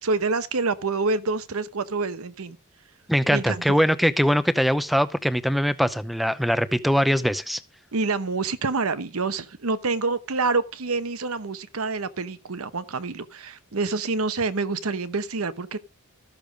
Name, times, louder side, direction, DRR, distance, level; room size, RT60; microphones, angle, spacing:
voice 1, 0.0-2.6 3.3-3.8 7.9-15.8, right 3 dB, 75° right, 0.9 m, -27 dB
voice 2, 3.1-7.6, equal, ahead, 0.7 m, -22 dB
14.0 x 6.8 x 5.2 m
head